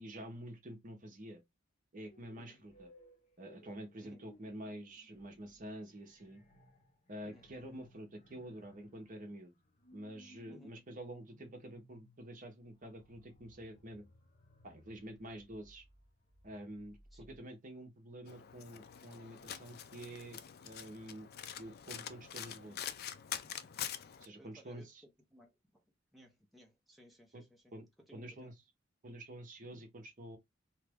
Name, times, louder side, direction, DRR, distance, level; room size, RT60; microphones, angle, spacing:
voice 1, 0.0-1.4 1.9-2.9 3.4-6.4 7.1-9.5 9.9-14.0 14.6-15.8 16.4-17.0 17.3-21.3 21.6-22.9 24.2-25.0 27.3-27.4 27.7-27.8 28.1-28.5 29.0-30.4, right 1 dB, 40° right, 0.8 m, -48 dB
sound 1, 2.0-17.4, left 1 dB, 35° left, 0.8 m, -63 dB
Domestic sounds home sounds, 18.3-24.3, left 9 dB, 50° left, 0.4 m, -45 dB
voice 2, 24.4-25.8 26.1-28.5 29.7-29.8, equal, ahead, 0.7 m, -61 dB
2.9 x 2.4 x 3.4 m
head